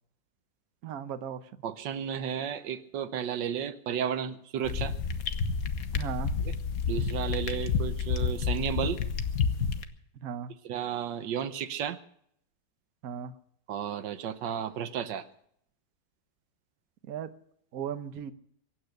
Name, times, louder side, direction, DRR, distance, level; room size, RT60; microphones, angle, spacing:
voice 1, 0.8-1.4 5.9-6.3 10.2-10.5 13.0-13.3 17.1-17.3 17.7-18.3, right 8 dB, 60° right, 11 dB, 1.3 m, -36 dB
voice 2, 1.6-4.9 6.4-6.5 6.9-9.0 10.6-12.0 13.7-15.2, right 8 dB, 80° right, 11 dB, 1.6 m, -33 dB
sound 1, 4.6-9.8, left 6 dB, 55° left, 1.4 m, -29 dB
23.5 x 9.2 x 6.5 m, 0.70 s
omnidirectional pair, 1.9 m